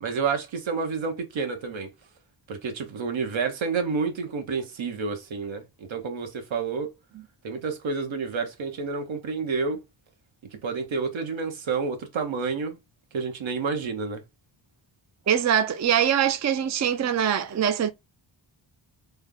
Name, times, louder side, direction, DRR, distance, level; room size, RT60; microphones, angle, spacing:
voice 1, 0.0-1.9 2.5-6.9 7.4-9.8 10.6-12.8 13.1-14.2, right 5 dB, 80° right, 1.1 m, -29 dB
voice 2, 15.3-17.9, right 9 dB, 40° right, 0.5 m, -23 dB
3.4 x 2.2 x 3.6 m
cardioid pair, 75°, 46 cm